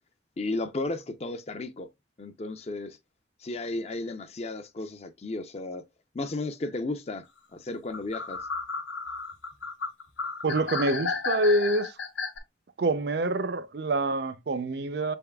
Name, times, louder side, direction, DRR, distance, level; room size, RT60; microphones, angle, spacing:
voice 1, 0.4-1.9 2.2-3.0 3.4-5.8 6.1-7.3 7.5-8.4, left 2 dB, 35° left, 0.5 m, -34 dB
sound 1, 7.9-12.4, left 4 dB, 90° left, 1.0 m, -33 dB
voice 2, 10.4-12.0 12.8-15.2, right 2 dB, 60° right, 0.5 m, -26 dB
6.2 x 3.5 x 2.2 m
head